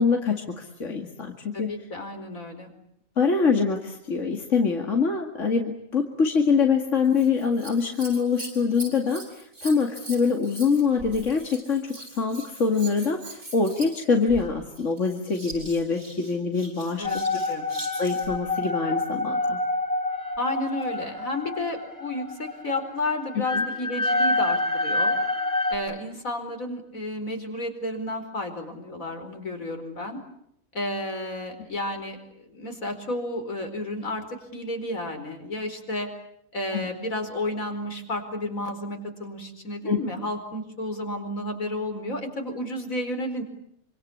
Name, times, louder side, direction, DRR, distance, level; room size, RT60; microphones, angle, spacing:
voice 1, 0.0-1.7 3.2-17.0 18.0-19.6 23.5-23.6 36.7-36.9 39.9-40.0, left 5 dB, 65° left, 3 dB, 2.6 m, -24 dB
voice 2, 1.5-2.7 17.0-17.7 20.4-25.1 25.7-30.2 30.7-34.2 34.5-36.1 36.5-43.4, left 1 dB, 80° left, 5 dB, 5.0 m, -32 dB
Scissors, 7.0-18.4 20.3-21.0 21.7-21.8, right 2 dB, 60° right, 7.6 m, -42 dB
sound 1, 17.0-25.8, left 2 dB, 15° right, 4.1 m, -27 dB
27.0 x 26.0 x 8.5 m, 0.72 s
omnidirectional pair, 1.4 m